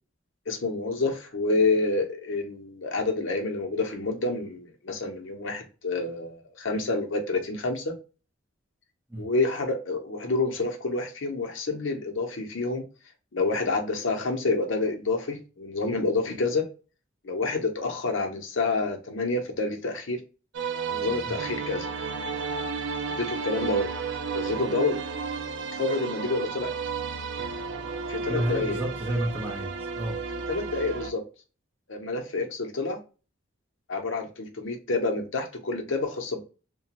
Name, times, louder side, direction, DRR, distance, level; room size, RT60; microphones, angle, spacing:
voice 1, 0.5-7.9 9.2-12.8 13.3-16.7 17.2-20.2 20.9-21.9 23.1-23.9 24.3-25.0 25.7-26.7 28.1-28.8 30.5-31.2 31.9-33.0 33.9-36.4, left 3 dB, 75° left, 4 dB, 0.7 m, -28 dB
sound 1, 20.5-31.1, right 5 dB, 65° right, 0.4 m, -32 dB
voice 2, 28.3-30.1, right 1 dB, 10° right, -4 dB, 0.7 m, -30 dB
2.8 x 2.2 x 2.8 m, 0.33 s
head